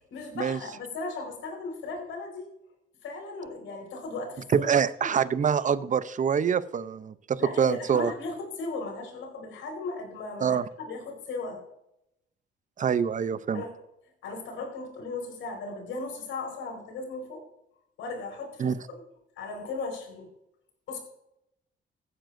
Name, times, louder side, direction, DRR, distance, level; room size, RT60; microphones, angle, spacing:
voice 1, 0.1-2.5 3.0-4.7 5.0-5.2 7.4-11.6 13.5-13.8 14.2-17.4 18.0-19.0 19.4-20.3 20.9-21.0, left 3 dB, 85° left, 2 dB, 4.6 m, -37 dB
voice 2, 4.5-8.1 10.4-10.6 12.8-13.6 18.6-18.7, right 7 dB, 40° right, 16 dB, 0.7 m, -25 dB
15.5 x 9.8 x 2.6 m, 0.79 s
cardioid pair, 90°, 20 cm